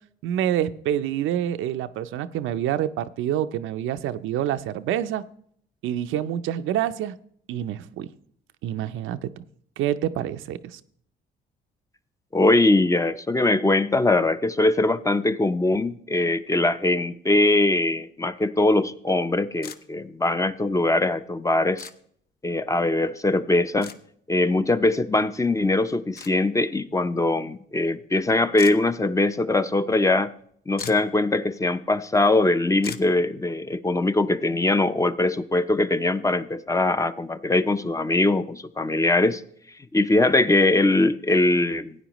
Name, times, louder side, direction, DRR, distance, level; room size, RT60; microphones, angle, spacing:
voice 1, 0.2-5.2 5.8-7.1 7.5-8.1 8.6-9.4 9.8-10.8, right 11 dB, 85° right, 11 dB, 0.6 m, -27 dB
voice 2, 12.3-21.9 22.4-23.9 24.3-30.3 30.7-39.4 39.9-41.9, left 2 dB, 15° left, 12 dB, 0.6 m, -22 dB
sound 1, 19.6-19.8 21.8-21.9 23.8-24.0 26.2-26.3 28.6-28.8 30.4-30.5 30.7-31.1 32.8-33.1, left 7 dB, 50° left, 0.8 m, -37 dB
16.0 x 9.5 x 3.0 m, 0.64 s
cardioid pair, 90°, 20 cm